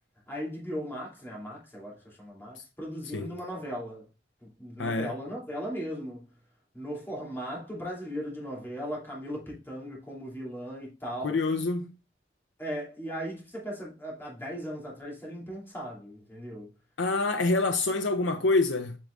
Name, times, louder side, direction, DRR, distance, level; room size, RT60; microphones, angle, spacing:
voice 1, 0.3-4.1 4.6-6.3 6.7-11.4 12.6-16.7, equal, 10° left, 3.0 m, -37 dB
voice 2, 4.8-5.1 11.2-11.9 17.0-19.0, left 3 dB, 85° left, 0.6 m, -26 dB
8.4 x 6.1 x 2.5 m
head